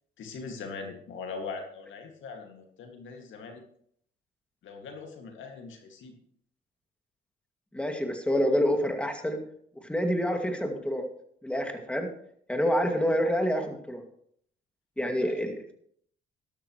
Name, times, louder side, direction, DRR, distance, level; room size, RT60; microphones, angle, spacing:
voice 1, 0.2-3.6 4.6-6.1 15.2-15.4, left 4 dB, 75° left, 3 dB, 2.3 m, -41 dB
voice 2, 7.7-9.4 9.9-11.0 11.4-12.1 12.5-14.0 15.0-15.7, equal, 5° left, 4 dB, 2.3 m, -27 dB
12.5 x 12.5 x 3.2 m, 0.65 s
cardioid pair, 90°, 20 cm